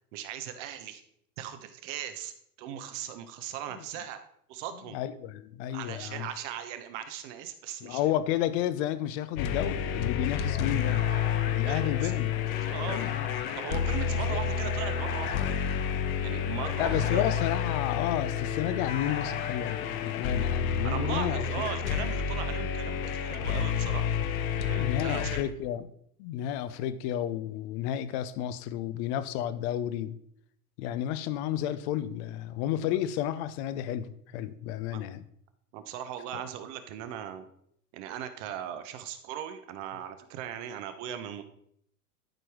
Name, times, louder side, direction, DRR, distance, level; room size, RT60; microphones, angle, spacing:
voice 1, 0.1-1.0 1.4-2.3 2.6-4.2 4.5-5.0 5.7-8.0 11.7-12.1 12.6-13.0 13.6-15.5 16.2-17.2 20.8-24.1 24.5-25.4 34.9-35.0 35.7-37.5 37.9-41.4, right 10 dB, 50° right, 9 dB, 1.2 m, -38 dB
voice 2, 4.9-6.3 7.8-11.1 11.5-12.3 12.9-13.1 14.3-14.4 15.8-16.0 16.8-21.7 24.8-25.9 26.2-30.2 30.8-35.2 36.3-36.4, left 11 dB, 45° left, 14 dB, 0.8 m, -32 dB
sound 1, 9.4-25.4, left 8 dB, 60° left, 1.1 m, -30 dB
sound 2, 10.2-20.6, left 5 dB, 20° left, 1.4 m, -42 dB
12.0 x 4.7 x 4.7 m, 0.69 s
hypercardioid pair, 110°, 47 cm